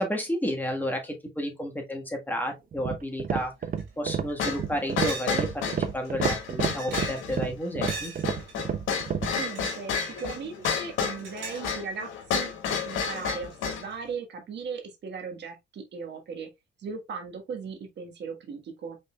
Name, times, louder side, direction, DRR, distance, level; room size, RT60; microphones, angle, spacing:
voice 1, 0.0-3.5 4.0-8.1, equal, 10° left, 1.5 m, -31 dB
sound 1, 2.7-9.4, right 7 dB, 45° right, 0.7 m, -30 dB
sound 2, 3.8-3.9 4.3-4.4 5.1-5.4 5.7-5.8 6.3-7.4 7.9-8.5 9.3-10.3 10.6-11.7, right 3 dB, 90° right, 2.7 m, -40 dB
sound 3, 4.4-13.9, left 6 dB, 85° left, 1.4 m, -31 dB
voice 2, 9.3-16.5 16.8-19.0, right 5 dB, 60° right, 1.5 m, -38 dB
5.4 x 3.7 x 2.3 m
cardioid pair, 90°, 20 cm